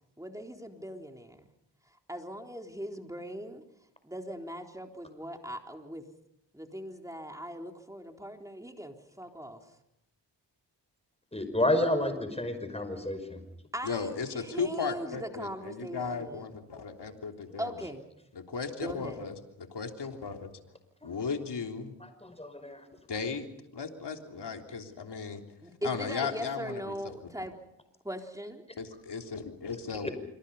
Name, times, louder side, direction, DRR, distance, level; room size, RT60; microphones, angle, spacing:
voice 1, 0.2-1.4 2.1-3.6 4.0-6.0 6.5-9.6 13.7-16.5 17.6-18.0 18.8-19.2 25.6-27.5 28.0-28.6, equal, 10° right, 3 dB, 3.9 m, -40 dB
voice 2, 11.3-13.4 21.0-21.1 22.2-22.8 30.0-30.1, left 1 dB, 15° left, 8 dB, 5.7 m, -30 dB
voice 3, 13.8-17.7 18.3-19.3 19.7-20.5 21.0-21.9 23.1-23.5 23.7-25.4 25.8-27.1 28.8-30.1, left 5 dB, 70° left, 4 dB, 3.4 m, -36 dB
26.5 x 25.0 x 5.6 m, 0.78 s
cardioid pair, 60°, 43 cm